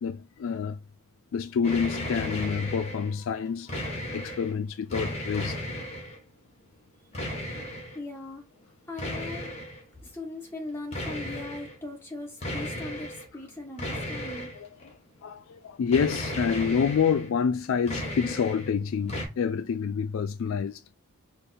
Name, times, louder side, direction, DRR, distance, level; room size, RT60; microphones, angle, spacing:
voice 1, 0.0-0.8 1.3-5.7 14.5-14.9 15.2-21.0, left 6 dB, 65° left, 0.3 m, -28 dB
sound 1, 1.6-3.1 3.5-4.5 4.9-6.2 7.1-8.0 9.0-9.8 10.9-11.8 12.4-13.3 13.8-14.9 15.9-17.3 17.6-18.7 19.1-19.3, left 1 dB, 30° left, 1.4 m, -35 dB
voice 2, 7.9-8.5 8.9-9.5 10.0-14.5, left 2 dB, 10° left, 1.4 m, -39 dB
5.1 x 2.2 x 4.2 m
head